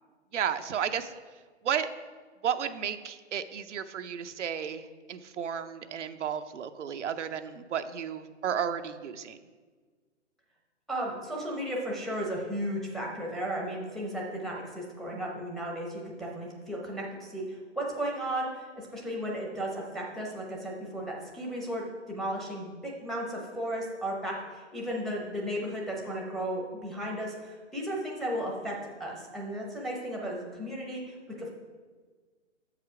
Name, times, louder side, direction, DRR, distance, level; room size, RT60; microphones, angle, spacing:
voice 1, 0.3-1.1 1.6-1.9 2.4-9.4, right 8 dB, 75° right, 9 dB, 0.6 m, -33 dB
voice 2, 10.9-31.5, right 1 dB, ahead, -2 dB, 0.8 m, -35 dB
7.4 x 4.9 x 4.8 m, 1.4 s
hypercardioid pair, 135°, 36 cm